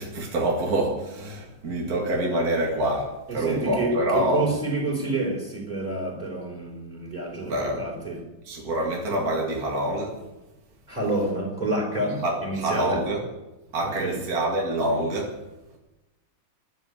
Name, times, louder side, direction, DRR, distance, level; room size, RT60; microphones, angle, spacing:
voice 1, 0.0-4.5 7.4-7.8 8.4-10.2 12.2-13.2 13.7-15.4, right 1 dB, 45° right, -1 dB, 2.6 m, -26 dB
voice 2, 3.3-8.2 10.9-13.0 14.0-14.2, right 2 dB, 20° right, -1 dB, 4.3 m, -28 dB
11.5 x 8.0 x 9.8 m, 1.0 s
omnidirectional pair, 2.2 m